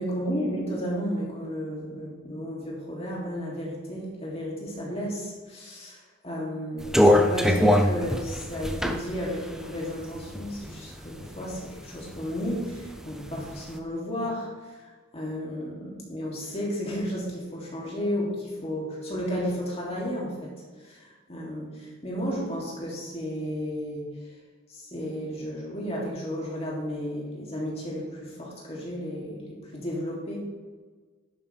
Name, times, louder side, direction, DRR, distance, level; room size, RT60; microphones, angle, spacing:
voice 1, 0.0-20.5 20.8-24.3 24.7-30.4, equal, 30° left, -4 dB, 3.0 m, -33 dB
sound 1, 6.8-10.8 11.2-12.2 12.6-13.6, left 1 dB, 5° right, 0.5 m, -22 dB
11.0 x 9.1 x 3.5 m, 1.4 s
head